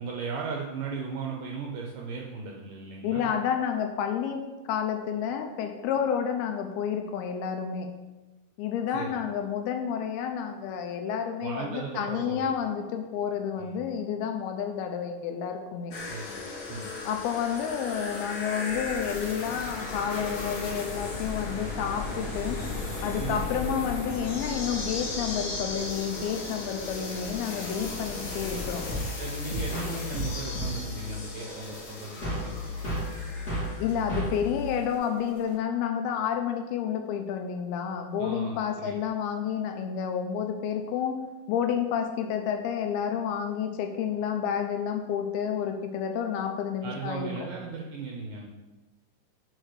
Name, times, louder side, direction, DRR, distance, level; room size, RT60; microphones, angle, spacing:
voice 1, 0.0-3.3 8.9-9.2 11.4-12.5 13.6-13.8 16.1-16.9 23.2-23.4 29.2-32.5 38.2-39.0 46.8-48.5, right 5 dB, 80° right, 0 dB, 1.9 m, -37 dB
voice 2, 3.0-4.4 4.7-7.9 8.6-16.0 17.1-22.6 23.0-28.8 33.8-41.2 41.5-47.3, left 8 dB, 80° left, 5 dB, 2.4 m, -30 dB
sound 1, 15.9-34.4 34.7-34.8, left 3 dB, 65° left, 1.6 m, -38 dB
sound 2, 18.7-29.0, left 3 dB, 45° left, 2.4 m, -38 dB
sound 3, 28.9-35.5, equal, 30° left, 1.4 m, -34 dB
6.5 x 4.3 x 6.4 m, 1.1 s
omnidirectional pair, 4.7 m